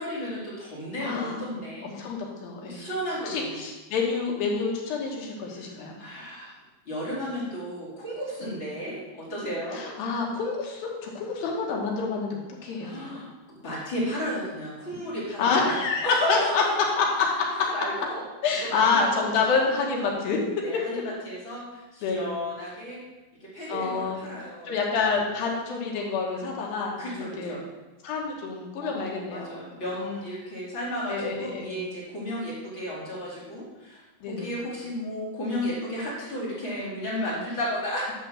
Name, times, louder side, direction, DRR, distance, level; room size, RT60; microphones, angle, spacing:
voice 1, 0.0-2.0 2.6-3.5 5.7-6.5 6.8-9.9 12.8-16.7 17.7-18.2 18.7-19.2 20.6-23.0 23.4-24.7 27.0-27.6 28.8-34.0 34.3-38.1, equal, 35° left, -8 dB, 3.0 m, -33 dB
voice 2, 1.0-1.4 1.8-2.8 3.2-5.9 8.4-8.5 9.7-13.2 15.4-17.5 18.4-20.4 22.0-22.4 23.7-24.2 24.6-27.6 28.0-29.6 30.0-30.1 31.1-31.9 34.2-34.5, left 4 dB, 75° left, -1 dB, 3.1 m, -27 dB
10.0 x 3.8 x 6.4 m, 1.1 s
omnidirectional pair, 4.4 m